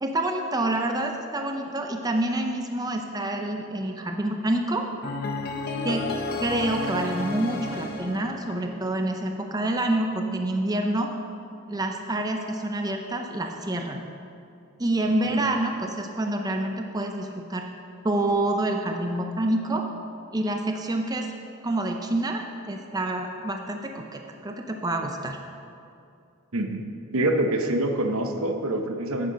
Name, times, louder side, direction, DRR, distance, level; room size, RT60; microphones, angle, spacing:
voice 1, 0.0-4.9 5.8-6.0 6.4-11.1 11.7-14.0 14.8-17.7 18.0-19.9 20.3-21.3 21.6-25.5, right 1 dB, 15° right, 3 dB, 0.5 m, -27 dB
sound 1, 5.0-9.1, left 3 dB, 45° left, 0.9 m, -32 dB
voice 2, 26.5-26.8 27.1-29.3, right 1 dB, 75° right, 5 dB, 0.9 m, -26 dB
10.5 x 8.1 x 5.0 m, 2.6 s
head